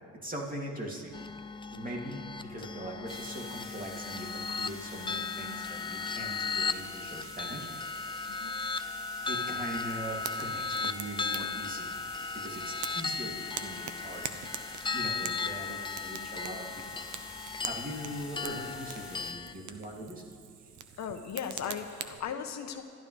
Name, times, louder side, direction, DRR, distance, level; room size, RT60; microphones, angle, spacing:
voice 1, 0.1-1.3 1.7-8.9 9.2-12.0 12.3-14.6 14.9-16.9 17.3-20.2, right 1 dB, 30° right, -1 dB, 2.9 m, -41 dB
sound 1, 1.1-19.5, left 4 dB, 15° left, 0.5 m, -36 dB
sound 2, 3.1-19.3, left 1 dB, 5° right, 3.3 m, -48 dB
Fire, 9.8-22.2, right 9 dB, 80° right, 0.9 m, -45 dB
voice 2, 21.0-22.8, left 7 dB, 65° left, 7 dB, 1.1 m, -37 dB
27.5 x 12.5 x 3.4 m, 2.4 s
cardioid pair, 90°, 30 cm